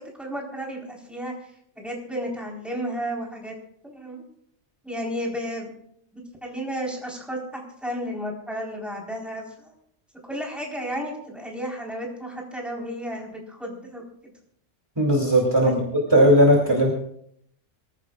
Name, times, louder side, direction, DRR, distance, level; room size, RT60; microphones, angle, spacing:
voice 1, 0.0-1.5 1.7-3.5 3.8-4.2 4.8-5.7 6.1-9.7 10.2-14.3 15.6-15.7, equal, ahead, -2 dB, 4.2 m, -33 dB
voice 2, 15.0-15.8 16.1-16.9, equal, 20° right, -2 dB, 2.8 m, -17 dB
26.0 x 15.0 x 2.4 m, 0.69 s
omnidirectional pair, 1.3 m